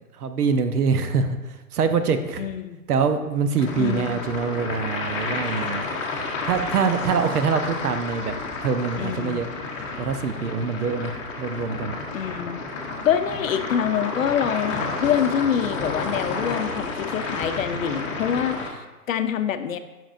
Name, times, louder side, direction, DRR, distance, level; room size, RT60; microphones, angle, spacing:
voice 1, 0.2-2.5 2.9-5.8 6.4-8.3 8.6-9.5 10.0-12.0, right 5 dB, 75° right, 9 dB, 0.9 m, -24 dB
voice 2, 2.4-2.8 3.8-4.2 9.0-9.4 12.1-12.6 13.0-18.8 19.1-19.8, left 9 dB, 60° left, 10 dB, 0.6 m, -25 dB
sound 1, 3.6-18.7, left 3 dB, 20° left, 0.8 m, -31 dB
10.5 x 6.0 x 2.6 m, 1.1 s
hypercardioid pair, 155°, 47 cm